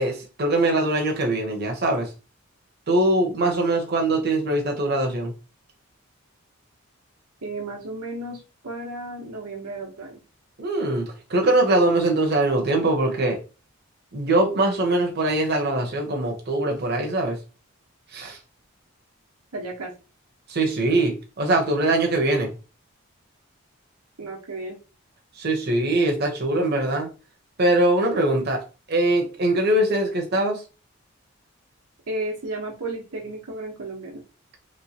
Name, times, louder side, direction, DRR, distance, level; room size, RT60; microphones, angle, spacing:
voice 1, 0.0-2.1 2.9-5.3 10.6-13.4 14.1-17.4 18.1-18.4 20.5-22.5 25.4-27.1 27.6-28.6 28.9-30.6, right 2 dB, 45° right, 0.8 m, -22 dB
voice 2, 7.4-10.2 19.5-19.9 24.2-24.8 32.1-34.2, right 2 dB, 90° right, 1.0 m, -33 dB
3.1 x 3.1 x 2.8 m
head